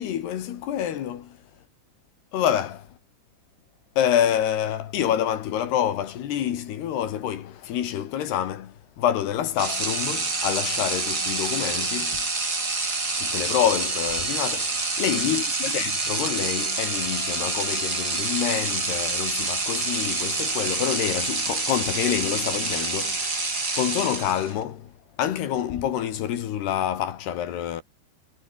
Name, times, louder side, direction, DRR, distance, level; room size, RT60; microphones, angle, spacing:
voice 1, 0.0-1.4 2.3-2.9 4.0-12.3 13.2-24.9 25.2-27.8, left 10 dB, 65° left, 3.7 m, -27 dB
sound 1, 9.6-24.6, right 3 dB, 20° right, 4.3 m, -27 dB
omnidirectional pair, 5.5 m